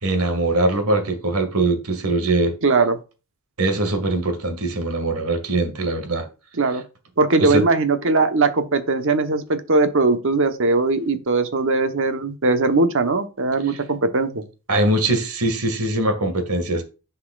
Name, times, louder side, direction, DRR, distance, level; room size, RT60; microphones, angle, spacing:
voice 1, 0.0-2.5 3.6-6.2 7.4-7.6 14.7-16.8, right 2 dB, 90° right, 2.1 m, -22 dB
voice 2, 2.6-3.0 6.6-6.8 7.2-14.4, right 3 dB, 65° right, 1.1 m, -20 dB
10.5 x 5.6 x 2.5 m
head